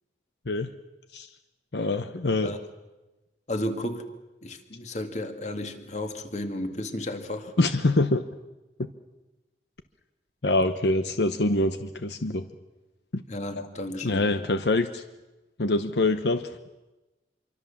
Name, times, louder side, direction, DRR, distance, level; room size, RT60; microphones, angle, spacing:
voice 1, 1.7-2.5 7.6-8.2 10.4-12.4 13.1-13.2 13.6-13.7 14.0-15.0 15.6-16.5, left 2 dB, 75° left, 9 dB, 1.0 m, -25 dB
voice 2, 3.5-4.1 4.4-7.5 10.6-10.7 13.3-14.3, left 1 dB, 40° left, 6 dB, 2.3 m, -33 dB
26.0 x 24.0 x 7.2 m, 1.1 s
head